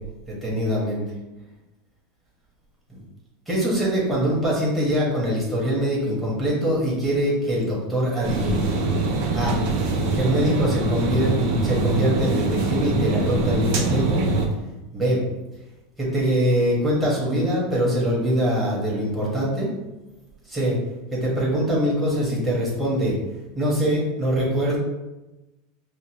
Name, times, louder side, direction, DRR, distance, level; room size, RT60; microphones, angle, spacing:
voice 1, 0.3-1.0 2.9-3.0 3.5-8.7 9.3-9.6 10.1-14.2 14.9-15.2 16.0-19.7 20.5-20.8 21.1-23.2 23.6-24.8, equal, 5° right, -7 dB, 1.5 m, -23 dB
sound 1, 8.2-14.4, right 3 dB, 60° right, 0.7 m, -23 dB
5.2 x 2.0 x 3.0 m, 1.0 s
supercardioid pair, 130°, 0 cm